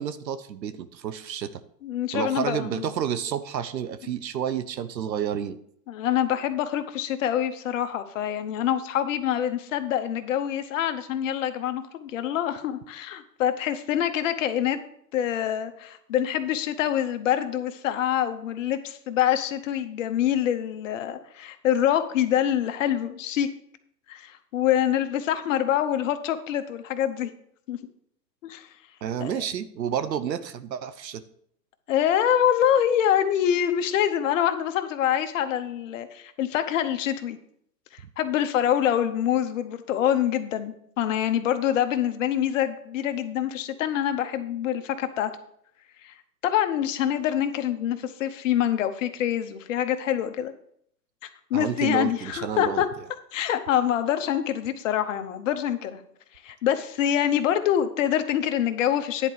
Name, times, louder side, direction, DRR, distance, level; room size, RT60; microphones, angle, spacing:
voice 1, 0.0-1.5 2.1-5.6 29.0-31.2 51.5-52.8, right 9 dB, 85° right, 14 dB, 0.9 m, -30 dB
voice 2, 1.8-2.9 5.9-14.8 15.1-23.5 24.1-27.3 27.7-27.8 28.4-28.7 29.2-29.4 31.9-37.4 37.9-45.3 46.0-46.1 46.4-50.5 51.2-52.9 53.3-56.0 56.4-59.3, left 10 dB, 50° left, 9 dB, 1.0 m, -25 dB
10.0 x 4.6 x 6.8 m, 0.68 s
hypercardioid pair, 135°, 49 cm